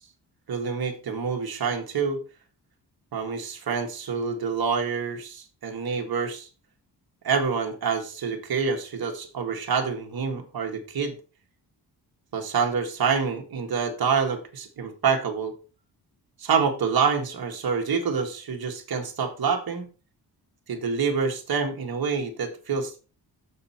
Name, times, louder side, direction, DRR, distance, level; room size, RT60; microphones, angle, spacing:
voice 1, 0.5-2.2 3.1-6.5 7.2-11.2 12.3-15.5 16.4-19.9 20.7-23.0, right 5 dB, 60° right, 3 dB, 1.9 m, -27 dB
6.9 x 6.5 x 4.4 m, 0.34 s
wide cardioid pair, 135°, 42 cm